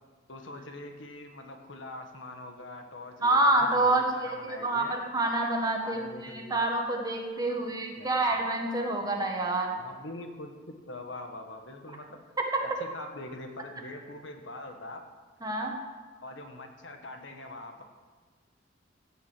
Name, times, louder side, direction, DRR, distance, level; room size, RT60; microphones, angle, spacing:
voice 1, 0.3-5.0 5.8-6.6 7.5-8.4 9.7-12.2 12.6-15.0 16.2-17.8, left 2 dB, 70° left, 4 dB, 1.5 m, -43 dB
voice 2, 3.2-9.8 12.5-12.6 15.4-15.7, right 2 dB, 20° right, 1 dB, 1.7 m, -27 dB
15.5 x 6.1 x 8.4 m, 1.4 s
head